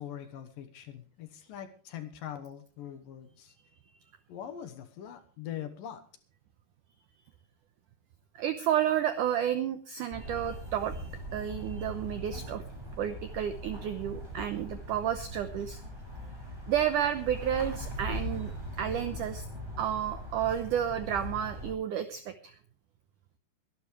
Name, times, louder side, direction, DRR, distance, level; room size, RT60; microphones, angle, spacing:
voice 1, 0.0-3.5 4.3-6.0, left 10 dB, 65° left, 9 dB, 2.5 m, -42 dB
voice 2, 8.4-12.6 13.0-15.8 16.7-18.5 18.8-19.5 19.8-22.5, right 10 dB, 85° right, 10 dB, 1.8 m, -31 dB
sound 1, 10.1-21.7, equal, 5° right, 7.0 m, -40 dB
23.0 x 12.0 x 3.2 m, 0.38 s
omnidirectional pair, 4.8 m